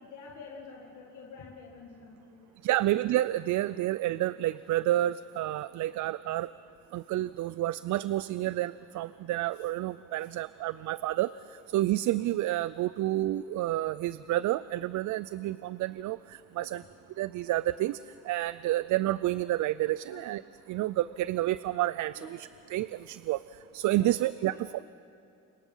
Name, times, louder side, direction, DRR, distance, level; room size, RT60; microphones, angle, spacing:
voice 1, 0.0-2.9 10.2-10.3 16.6-16.9 20.1-20.4 22.2-22.4 24.0-24.8, left 4 dB, 80° left, -1 dB, 2.2 m, -49 dB
voice 2, 2.6-6.5 6.9-11.3 11.7-16.2 16.6-16.8 17.2-18.0 18.3-20.4 20.7-22.1 22.7-23.4 23.7-24.5, right 15 dB, 75° right, 17 dB, 0.5 m, -29 dB
28.0 x 23.5 x 5.6 m, 2.7 s
cardioid pair, 90°, 30 cm